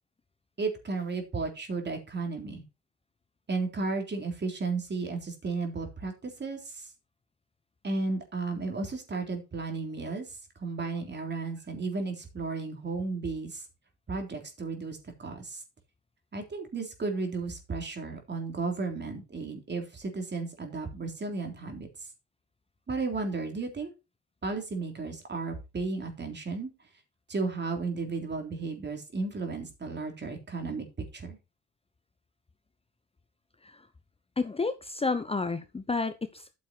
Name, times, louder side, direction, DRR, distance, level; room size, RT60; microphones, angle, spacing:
voice 1, 0.6-2.6 3.5-6.9 7.8-13.7 14.1-15.6 16.3-21.9 22.9-23.9 24.4-26.7 27.3-30.9 31.1-31.4, right 3 dB, 35° right, 4 dB, 3.6 m, -34 dB
voice 2, 34.4-36.5, left 4 dB, 20° left, 10 dB, 0.8 m, -31 dB
9.4 x 6.7 x 4.5 m, 0.27 s
cardioid pair, 90°, 30 cm